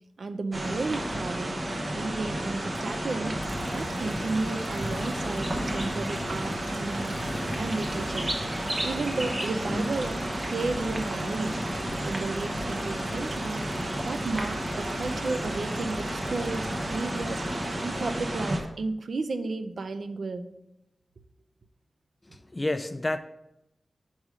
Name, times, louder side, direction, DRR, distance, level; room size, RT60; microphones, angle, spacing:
voice 1, 0.2-1.6 1.9-3.4 3.7-7.2 7.5-8.3 8.8-10.2 10.5-11.6 12.0-13.6 14.0-20.5, right 3 dB, 70° right, 10 dB, 0.4 m, -33 dB
sound 1, 0.5-18.6, right 1 dB, 40° right, 1.0 m, -31 dB
sound 2, 2.7-18.7, left 1 dB, 60° left, 0.6 m, -44 dB
voice 2, 22.3-23.2, left 1 dB, 25° left, 11 dB, 0.3 m, -29 dB
5.4 x 4.8 x 4.9 m, 0.86 s
wide cardioid pair, 90°, 0 cm